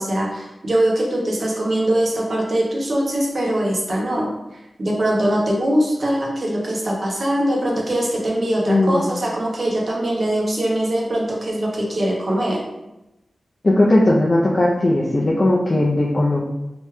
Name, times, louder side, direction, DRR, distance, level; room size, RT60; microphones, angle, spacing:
voice 1, 0.0-12.6, right 1 dB, 50° right, -2 dB, 0.7 m, -22 dB
voice 2, 8.7-9.0 13.6-16.5, left 1 dB, 40° left, -5 dB, 0.4 m, -17 dB
3.0 x 2.2 x 3.1 m, 0.94 s
wide cardioid pair, 95°, 0 cm